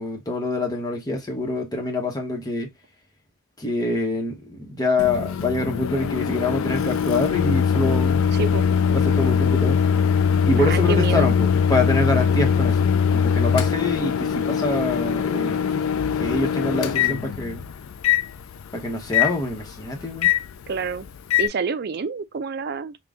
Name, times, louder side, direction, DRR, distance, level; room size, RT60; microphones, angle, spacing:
voice 1, 0.0-2.7 3.6-8.3 8.9-9.8 10.5-15.8 16.2-17.6 18.7-20.3, left 2 dB, 20° left, 0.9 m, -25 dB
Microwave oven, 5.0-21.5, left 7 dB, 70° left, 0.4 m, -22 dB
voice 2, 8.3-8.7 10.5-11.3 20.7-21.1 21.4-23.0, right 5 dB, 50° right, 0.4 m, -27 dB
3.9 x 2.2 x 3.4 m
head